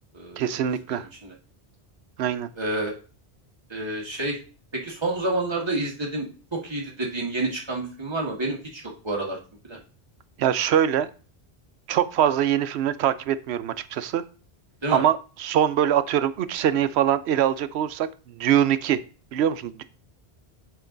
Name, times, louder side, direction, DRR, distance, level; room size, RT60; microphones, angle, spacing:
voice 1, 0.4-1.1 2.2-2.5 10.4-11.1 11.9-14.2 14.9-19.0 19.3-19.8, right 10 dB, 85° right, 14 dB, 0.8 m, -23 dB
voice 2, 0.9-1.3 2.6-2.9 3.7-4.4 4.7-9.4 9.6-9.8 14.8-15.0, right 2 dB, 25° right, -2 dB, 1.7 m, -29 dB
8.1 x 4.6 x 3.8 m, 0.37 s
omnidirectional pair, 1.1 m